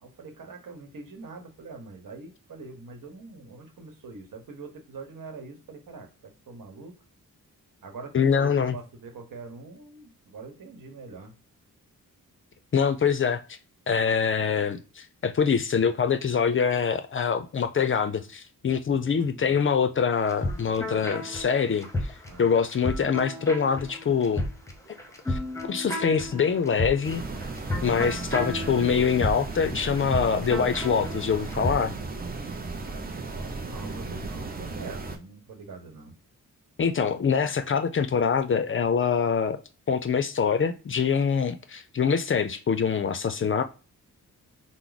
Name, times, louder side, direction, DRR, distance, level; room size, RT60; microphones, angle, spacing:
voice 1, 0.0-7.0 7.8-11.3 18.9-19.7 22.3-22.6 32.8-36.2, right 3 dB, 75° right, 1.1 m, -44 dB
voice 2, 8.1-8.8 12.7-13.4 13.9-22.1 22.4-24.5 24.9-25.0 25.3-27.2 27.8-31.9 36.8-39.6 39.9-43.6, left 6 dB, 40° left, 0.4 m, -24 dB
sound 1, 20.2-31.8, left 1 dB, 10° left, 0.8 m, -33 dB
sound 2, 27.0-35.2, right 3 dB, 30° right, 0.6 m, -35 dB
4.5 x 2.0 x 3.9 m
wide cardioid pair, 140°, 33 cm